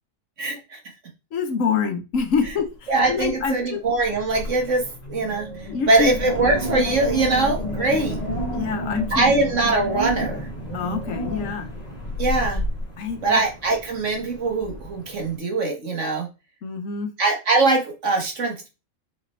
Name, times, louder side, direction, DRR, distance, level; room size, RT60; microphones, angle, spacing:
voice 1, 0.4-0.8 2.9-5.5 5.9-8.2 9.1-10.5 12.2-12.6 13.2-16.3 17.2-18.7, right 3 dB, 60° right, 1 dB, 2.0 m, -22 dB
voice 2, 1.3-3.8 5.7-6.1 8.5-9.3 10.7-11.7 13.0-13.4 16.6-17.1, left 6 dB, 70° left, 7 dB, 1.3 m, -26 dB
Wind, 2.1-2.6 2.9-3.4 3.9-15.3, equal, 30° left, 1.6 m, -31 dB
6.0 x 4.9 x 3.3 m, 0.28 s
omnidirectional pair, 1.5 m